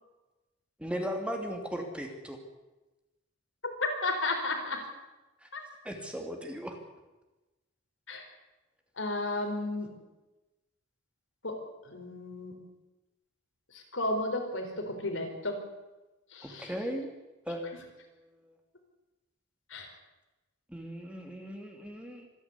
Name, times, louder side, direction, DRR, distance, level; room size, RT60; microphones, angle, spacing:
voice 1, 0.8-2.4 5.4-5.5 5.8-6.8 16.4-17.1 17.5-18.5 20.7-22.3, equal, 5° right, 3 dB, 2.7 m, -37 dB
voice 2, 3.6-4.9 5.5-5.6 8.1-8.2 9.0-9.9 11.4-12.5 13.7-15.6 16.3-16.7 19.7-19.9, left 2 dB, 75° left, 3 dB, 4.5 m, -33 dB
25.5 x 11.0 x 9.8 m, 1.1 s
head